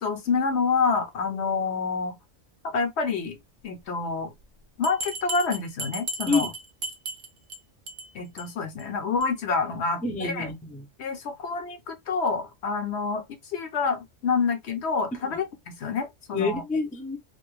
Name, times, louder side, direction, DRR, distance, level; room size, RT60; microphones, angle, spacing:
voice 1, 0.0-2.2 2.6-3.4 3.6-4.3 4.8-6.5 8.1-10.5 11.0-15.5 15.8-16.6, left 4 dB, 65° left, 0.9 m, -27 dB
Bell, 4.8-7.6 7.9-8.1 8.4-8.5 8.8-8.9 9.2-9.3, right 2 dB, 55° right, 0.8 m, -34 dB
voice 2, 10.0-10.8 15.1-15.2 16.3-17.2, left 3 dB, 10° left, 0.5 m, -27 dB
2.7 x 2.4 x 3.2 m
omnidirectional pair, 1.3 m